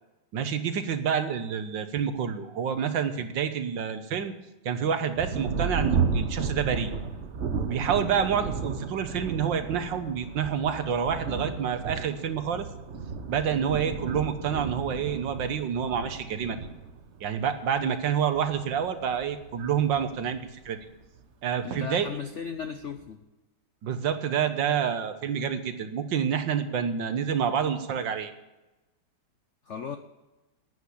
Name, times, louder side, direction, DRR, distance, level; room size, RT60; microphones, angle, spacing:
voice 1, 0.3-4.3 4.6-6.9 7.6-12.6 13.3-16.6 17.2-20.8 21.4-22.1 23.8-28.3, right 7 dB, 65° right, 9 dB, 1.7 m, -28 dB
Thunder, 5.1-21.2 22.0-22.1 22.6-23.1, right 5 dB, 50° right, 0.9 m, -33 dB
voice 2, 21.6-23.2 29.7-30.0, left 6 dB, 70° left, 8 dB, 0.7 m, -36 dB
11.0 x 9.0 x 8.4 m, 1.0 s
omnidirectional pair, 2.2 m